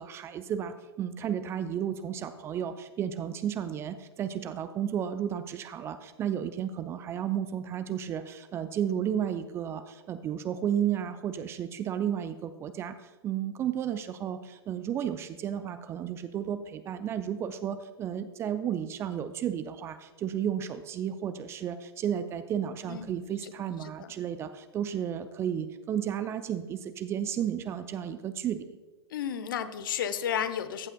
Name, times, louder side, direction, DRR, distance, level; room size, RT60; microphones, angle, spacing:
voice 1, 0.0-28.8, right 9 dB, 20° right, 11 dB, 0.4 m, -33 dB
voice 2, 23.8-24.1 29.1-30.9, left 9 dB, 55° left, 12 dB, 0.8 m, -33 dB
14.5 x 8.7 x 2.3 m, 1.3 s
figure-of-eight pair, 110°, 13 cm